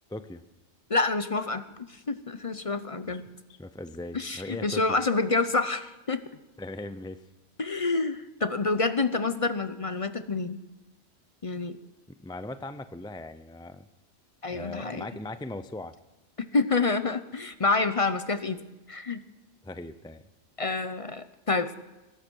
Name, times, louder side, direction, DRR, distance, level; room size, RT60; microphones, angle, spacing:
voice 1, 0.1-0.4 3.6-5.0 6.6-7.2 12.1-13.9 14.5-15.9 19.6-20.2, left 2 dB, 5° left, 11 dB, 0.4 m, -39 dB
voice 2, 0.9-3.2 4.1-6.2 7.6-10.6 11.4-11.8 14.4-15.1 16.5-18.6 18.9-19.2 20.6-21.8, left 3 dB, 35° left, 11 dB, 0.7 m, -28 dB
22.0 x 11.5 x 4.6 m, 1.1 s
omnidirectional pair, 1.2 m